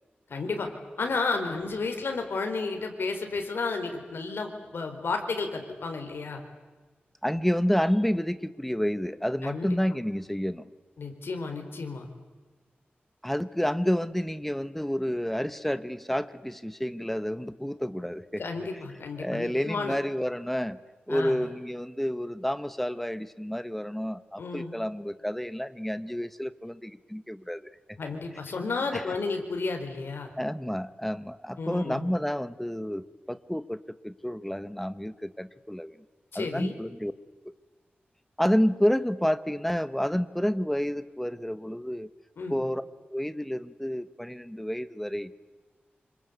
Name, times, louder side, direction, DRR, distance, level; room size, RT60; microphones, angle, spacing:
voice 1, 0.3-0.7 1.0-6.4 9.4-9.7 11.0-12.1 18.4-20.0 21.1-21.4 24.4-24.7 28.0-30.3 31.6-32.1 36.3-36.7 42.4-42.6, left 4 dB, 80° left, 4 dB, 4.4 m, -32 dB
voice 2, 7.2-10.7 13.2-18.4 19.2-20.8 21.1-27.7 28.9-29.0 30.4-36.0 36.3-37.1 37.4-37.5 38.4-42.1 42.5-42.8 43.1-45.4, equal, 5° left, 14 dB, 1.1 m, -29 dB
27.0 x 26.0 x 8.2 m, 1.3 s
wide cardioid pair, 115°, 4 cm